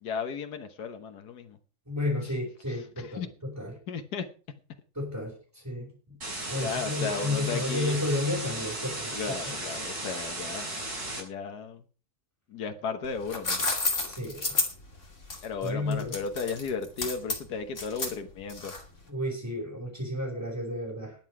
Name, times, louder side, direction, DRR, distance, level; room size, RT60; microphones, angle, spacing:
voice 1, 0.0-1.6 2.7-3.3 3.9-4.3 6.6-8.0 9.1-10.8 11.1-11.8 12.5-13.6 15.4-18.7, left 5 dB, 80° left, 7 dB, 1.8 m, -35 dB
voice 2, 1.9-3.7 4.9-5.9 6.5-9.1 14.0-14.6 15.6-16.2 19.1-21.2, left 2 dB, 10° right, -5 dB, 5.8 m, -32 dB
sound 1, 6.2-11.2, right 2 dB, 70° right, 6.1 m, -35 dB
sound 2, 13.0-19.0, left 3 dB, 50° left, 3.0 m, -31 dB
20.5 x 7.8 x 4.9 m, 0.38 s
omnidirectional pair, 1.7 m